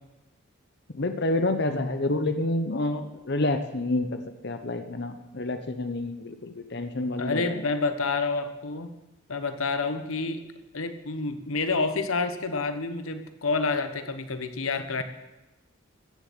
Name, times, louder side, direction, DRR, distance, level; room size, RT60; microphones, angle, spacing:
voice 1, 0.9-7.6, left 2 dB, 55° left, 8 dB, 0.9 m, -28 dB
voice 2, 7.2-8.9 9.3-15.0, left 3 dB, 85° left, 9 dB, 1.1 m, -29 dB
15.0 x 7.2 x 8.7 m, 1.0 s
head